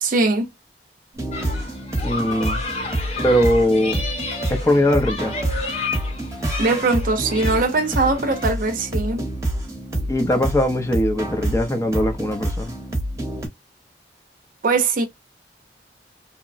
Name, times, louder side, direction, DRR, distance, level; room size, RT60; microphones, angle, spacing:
voice 1, 0.0-0.5 6.6-9.2 14.6-15.1, right 3 dB, 50° right, 0.6 m, -21 dB
sound 1, 1.2-13.5, right 1 dB, 20° right, 0.9 m, -27 dB
sound 2, 1.3-8.5, left 3 dB, 35° left, 0.9 m, -31 dB
voice 2, 2.0-2.6 3.2-4.0 4.5-5.5 10.1-12.8, left 1 dB, 15° left, 0.5 m, -20 dB
2.9 x 2.1 x 2.4 m
head